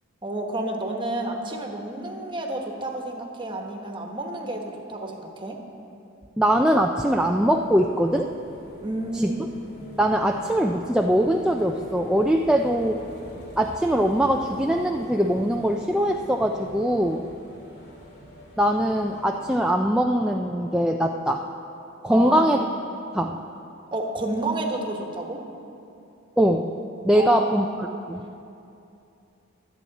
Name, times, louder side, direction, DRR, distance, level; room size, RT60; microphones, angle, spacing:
voice 1, 0.2-5.6 8.8-9.4 22.1-22.5 23.9-25.4 27.1-27.9, right 2 dB, 25° right, 2 dB, 1.3 m, -30 dB
voice 2, 6.4-8.3 9.1-9.3 10.0-13.0 13.6-17.3 18.6-21.4 22.0-22.6 23.1-23.4 26.4-26.7 27.0-28.2, equal, 5° right, 1 dB, 0.4 m, -22 dB
sound 1, 6.9-19.5, left 1 dB, 55° left, 2.5 m, -43 dB
24.0 x 8.6 x 4.1 m, 2.7 s
head